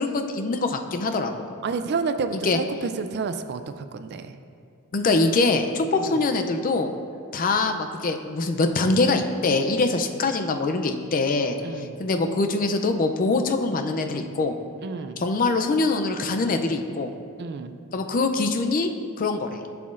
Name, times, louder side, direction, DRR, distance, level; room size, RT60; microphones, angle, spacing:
voice 1, 0.0-1.5 2.3-2.6 4.9-6.9 7.3-14.6 15.2-17.1 17.9-18.9 19.2-19.6, left 3 dB, 40° left, 6 dB, 0.4 m, -23 dB
voice 2, 1.6-4.4 6.0-6.2 11.6-12.0 14.8-15.2 17.4-17.8, right 4 dB, 50° right, 9 dB, 0.4 m, -30 dB
11.0 x 5.8 x 2.5 m, 2.3 s
head